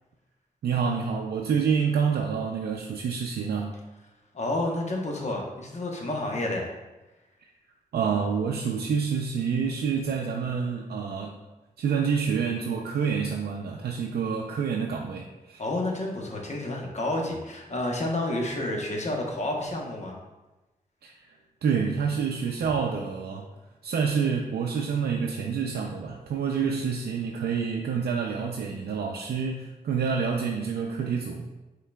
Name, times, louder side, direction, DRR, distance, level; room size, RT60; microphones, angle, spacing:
voice 1, 0.6-3.7 7.9-11.4 11.8-15.6 21.0-21.4 21.6-23.5 23.8-31.5, right 6 dB, 85° right, 0 dB, 0.4 m, -28 dB
voice 2, 4.3-6.7 15.6-20.1, left 1 dB, 45° left, 0 dB, 0.9 m, -30 dB
5.6 x 3.8 x 2.2 m, 1.1 s
cardioid pair, 75°, 16 cm